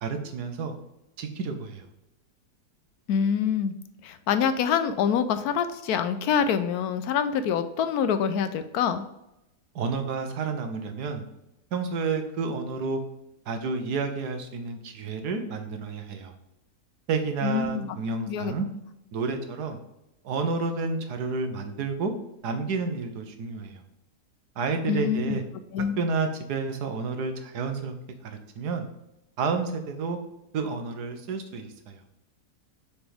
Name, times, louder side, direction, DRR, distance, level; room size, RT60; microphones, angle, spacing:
voice 1, 0.0-0.7 1.2-1.9 9.7-11.2 11.7-13.0 13.5-16.3 17.1-18.7 19.1-19.8 20.2-22.1 22.4-23.8 24.6-25.4 26.0-27.9 28.2-28.9 29.4-30.2 30.5-32.0, right 4 dB, 85° right, 6 dB, 1.5 m, -30 dB
voice 2, 3.1-3.7 4.0-9.0 17.4-18.0 18.3-18.5 24.9-25.4 25.7-25.9, left 7 dB, 75° left, 11 dB, 1.1 m, -25 dB
6.8 x 4.4 x 3.5 m, 0.89 s
omnidirectional pair, 1.7 m